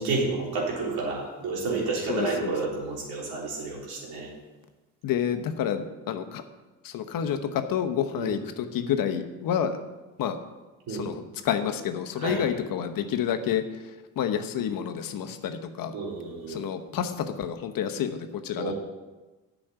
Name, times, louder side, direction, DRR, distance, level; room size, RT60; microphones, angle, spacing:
voice 1, 0.0-4.3 8.2-8.4 10.9-11.1 12.2-12.4 15.9-16.6 18.6-18.7, right 3 dB, 70° right, -3 dB, 3.6 m, -30 dB
voice 2, 2.1-2.5 5.0-6.4 6.8-9.8 10.2-10.4 10.9-13.6 14.2-15.9 16.5-18.7, left 8 dB, 60° left, 7 dB, 1.1 m, -29 dB
8.6 x 6.2 x 8.0 m, 1.2 s
hypercardioid pair, 60°, 39 cm